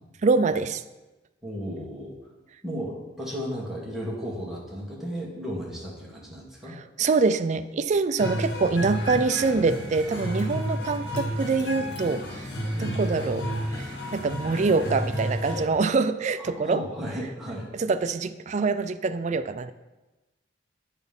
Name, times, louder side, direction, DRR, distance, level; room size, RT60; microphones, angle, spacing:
voice 1, 0.2-0.8 6.7-12.5 12.8-16.8 17.8-19.7, right 4 dB, 35° right, 12 dB, 0.3 m, -25 dB
voice 2, 1.4-2.1 2.6-6.8 12.7-13.0 16.4-17.7, equal, ahead, -5 dB, 1.8 m, -34 dB
sound 1, 8.2-15.7, equal, 60° left, 1.6 m, -31 dB
9.8 x 4.1 x 5.3 m, 1.1 s
head